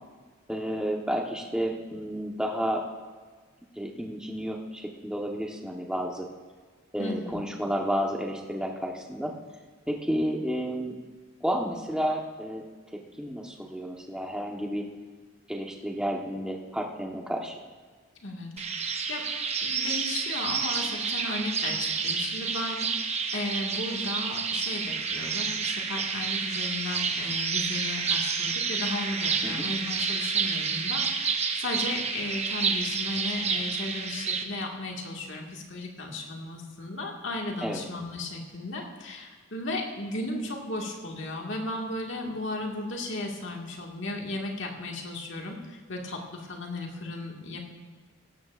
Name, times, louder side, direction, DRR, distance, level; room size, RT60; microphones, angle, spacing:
voice 1, 0.5-2.8 3.8-6.3 6.9-9.3 9.9-10.9 11.4-12.6 13.2-14.9 15.5-17.5 29.4-29.7 37.6-37.8, equal, 5° right, 0 dB, 1.2 m, -31 dB
voice 2, 7.0-7.4 18.2-19.3 19.6-47.6, left 2 dB, 60° left, 0 dB, 1.9 m, -35 dB
sound 1, 18.6-34.4, right 5 dB, 30° right, 0.8 m, -29 dB
17.5 x 13.5 x 2.5 m, 1.5 s
head